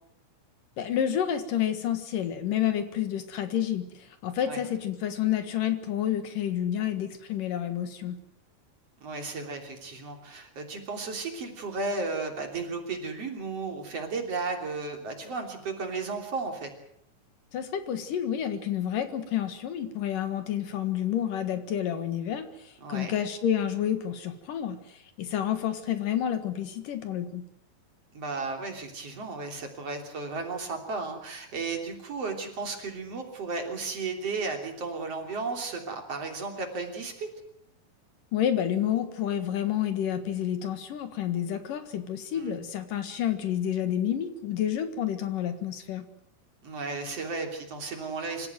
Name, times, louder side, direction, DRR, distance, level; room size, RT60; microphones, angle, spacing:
voice 1, 0.8-8.2 17.5-27.4 38.3-46.0, left 10 dB, 70° left, 9 dB, 3.2 m, -29 dB
voice 2, 9.0-16.7 22.8-23.1 28.1-37.3 42.3-42.6 46.6-48.5, right 3 dB, 45° right, 3 dB, 4.1 m, -34 dB
26.0 x 14.5 x 9.2 m, 0.73 s
omnidirectional pair, 4.1 m